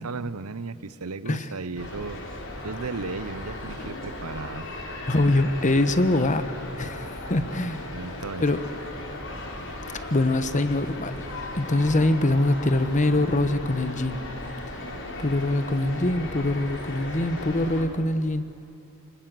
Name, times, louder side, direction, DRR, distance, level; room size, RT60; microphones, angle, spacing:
voice 1, 0.0-4.7 7.9-8.6, right 4 dB, 80° right, 15 dB, 0.9 m, -35 dB
sound 1, 1.8-17.9, left 1 dB, 60° left, 3.8 m, -36 dB
voice 2, 5.1-6.4 6.8-7.9 8.4-8.6 10.1-11.1 11.5-14.2 15.2-18.4, left 2 dB, 35° left, 12 dB, 1.1 m, -23 dB
26.0 x 20.0 x 7.7 m, 2.8 s
head